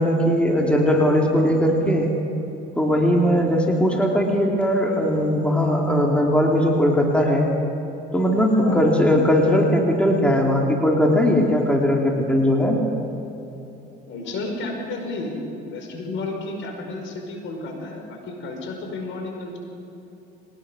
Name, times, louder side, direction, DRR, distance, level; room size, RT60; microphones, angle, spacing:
voice 1, 0.0-2.1 2.8-7.5 8.1-12.8, equal, 5° left, -1 dB, 3.3 m, -19 dB
voice 2, 14.1-19.6, left 2 dB, 65° left, 2 dB, 5.3 m, -32 dB
22.5 x 19.0 x 6.5 m, 2.9 s
cardioid pair, 95°, 21 cm